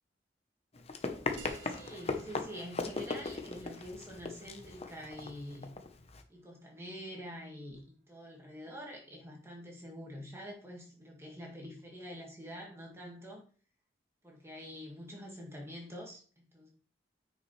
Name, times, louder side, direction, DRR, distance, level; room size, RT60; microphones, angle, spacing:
Run, 0.7-6.2, left 3 dB, 35° left, 0.8 m, -39 dB
sound 1, 1.4-6.5, right 4 dB, 90° right, 1.1 m, -57 dB
voice 1, 1.6-5.7 6.3-13.4 14.2-16.7, equal, 15° right, 1.7 m, -46 dB
9.6 x 5.4 x 3.2 m
head